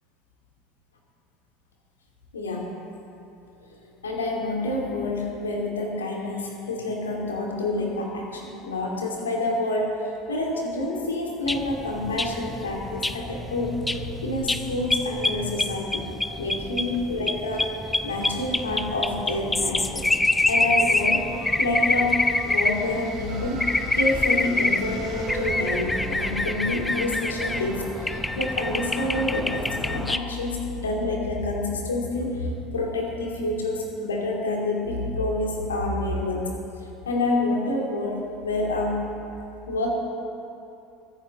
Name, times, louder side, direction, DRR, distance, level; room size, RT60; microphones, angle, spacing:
voice 1, 2.3-2.7 3.6-3.7 4.0-9.9 10.3-16.0 16.4-17.7 18.0-21.2 21.6-22.2 22.4-36.5 36.8-39.0 39.6-39.9, left 2 dB, 80° left, -1 dB, 2.4 m, -28 dB
sound 1, 11.5-30.2, left 2 dB, 10° left, 0.7 m, -26 dB
sound 2, 12.3-29.4, right 4 dB, 50° right, 2.6 m, -43 dB
22.0 x 10.0 x 3.9 m, 2.8 s
figure-of-eight pair, 70°, 0 cm